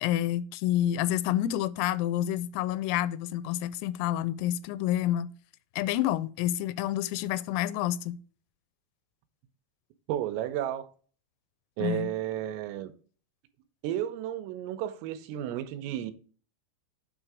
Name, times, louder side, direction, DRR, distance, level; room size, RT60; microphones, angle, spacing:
voice 1, 0.0-5.3 5.8-8.2 11.8-12.1, left 12 dB, 85° left, 3.2 m, -28 dB
voice 2, 10.1-10.9 11.8-12.9 13.8-16.1, right 11 dB, 80° right, 3.2 m, -32 dB
9.0 x 3.7 x 4.7 m
omnidirectional pair, 6.0 m